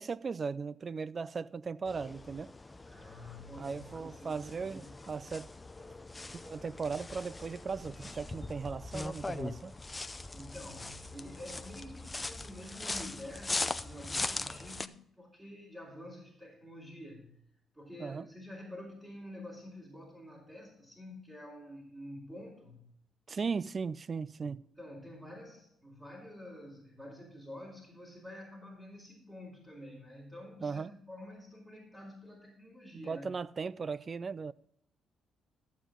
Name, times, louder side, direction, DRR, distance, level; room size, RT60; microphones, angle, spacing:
voice 1, 0.0-2.5 3.6-5.5 6.3-9.7 18.0-18.3 23.3-24.6 30.6-30.9 32.9-34.5, right 5 dB, 40° right, 0.4 m, -37 dB
sound 1, 1.9-14.9, left 2 dB, 15° left, 0.5 m, -41 dB
voice 2, 2.9-4.9 10.3-17.4 17.7-22.8 24.8-33.3, left 1 dB, 20° right, 3.5 m, -48 dB
13.5 x 7.2 x 3.7 m
cardioid pair, 90°, 0 cm